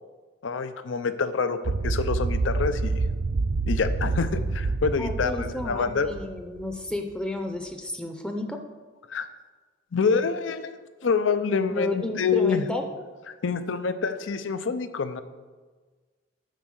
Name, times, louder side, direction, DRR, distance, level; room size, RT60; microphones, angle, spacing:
voice 1, 0.4-2.9 3.7-6.1 9.1-9.3 9.9-12.7 13.4-15.2, left 5 dB, 85° left, 11 dB, 0.5 m, -26 dB
sound 1, 1.6-6.7, right 3 dB, 55° right, 0.5 m, -27 dB
voice 2, 5.0-8.6 11.7-12.9, left 1 dB, 5° left, 4 dB, 0.6 m, -32 dB
9.2 x 4.3 x 6.3 m, 1.4 s
head